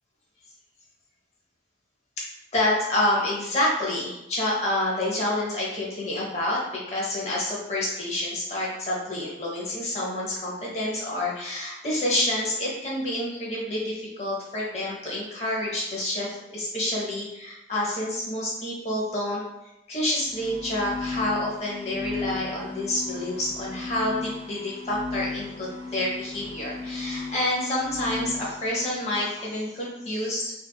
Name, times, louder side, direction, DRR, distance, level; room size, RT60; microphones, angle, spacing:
voice 1, 2.5-19.4 19.9-30.5, left 1 dB, 35° left, -5 dB, 0.6 m, -28 dB
sound 1, 20.2-29.3, left 3 dB, 25° right, 0.7 m, -36 dB
2.7 x 2.3 x 2.2 m, 0.89 s
head